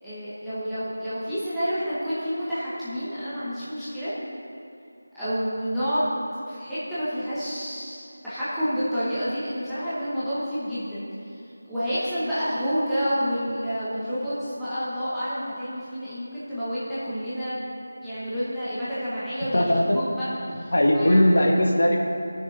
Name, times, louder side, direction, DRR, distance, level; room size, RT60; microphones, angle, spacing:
voice 1, 0.0-4.1 5.1-6.2 6.4-11.0 11.3-11.4 11.7-17.6 18.0-21.2, equal, ahead, -18 dB, 0.9 m, -29 dB
voice 2, 19.5-20.0 20.7-22.0, left 1 dB, 60° left, 1 dB, 1.4 m, -19 dB
16.0 x 6.4 x 4.0 m, 2.8 s
figure-of-eight pair, 180°, 0 cm